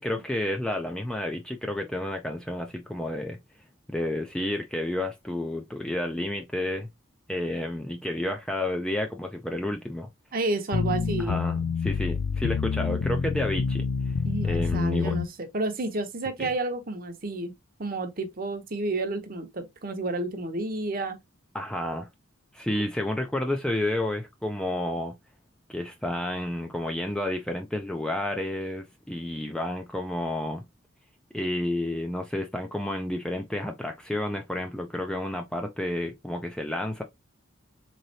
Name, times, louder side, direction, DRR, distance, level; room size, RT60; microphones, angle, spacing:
voice 1, 0.0-3.4 3.9-6.9 7.3-10.1 11.2-14.1 14.4-15.2 16.4-16.5 21.5-22.1 22.5-25.1 25.7-30.6 31.3-37.0, left 1 dB, 5° left, 0.4 m, -30 dB
voice 2, 10.3-11.4 14.2-17.5 17.8-21.2, right 2 dB, 45° right, 0.8 m, -31 dB
sound 1, 10.7-15.3, left 5 dB, 80° left, 0.4 m, -27 dB
3.8 x 3.1 x 2.7 m
head